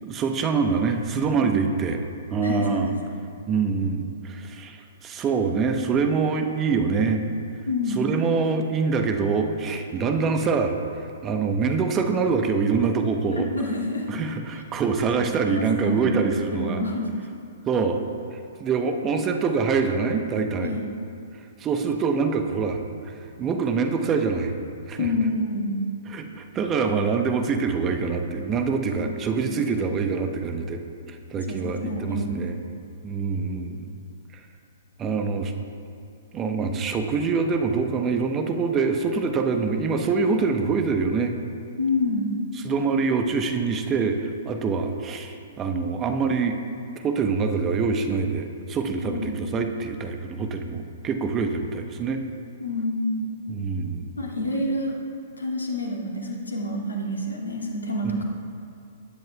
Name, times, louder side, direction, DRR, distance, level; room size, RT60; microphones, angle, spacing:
voice 1, 0.0-2.0 2.3-2.9 3.5-7.3 7.9-13.5 14.1-16.8 17.7-18.0 18.3-20.7 21.6-22.8 23.1-24.5 24.9-25.1 26.1-30.8 31.1-32.6 33.0-33.9 34.3-34.4 35.0-35.5 36.3-41.4 42.6-46.6 47.0-52.2 53.5-54.2, right 5 dB, 25° right, 5 dB, 1.0 m, -25 dB
voice 2, 2.4-3.2 7.7-8.0 13.3-14.1 15.0-15.1 15.5-16.2 16.5-17.1 20.6-20.8 23.3-23.4 25.0-25.8 28.9-29.5 31.4-32.8 41.8-42.3 49.0-49.4 52.6-53.3 54.2-55.0 55.4-58.2, left 1 dB, 80° left, -2 dB, 2.4 m, -28 dB
20.0 x 10.5 x 2.3 m, 2.5 s
figure-of-eight pair, 115°, 0 cm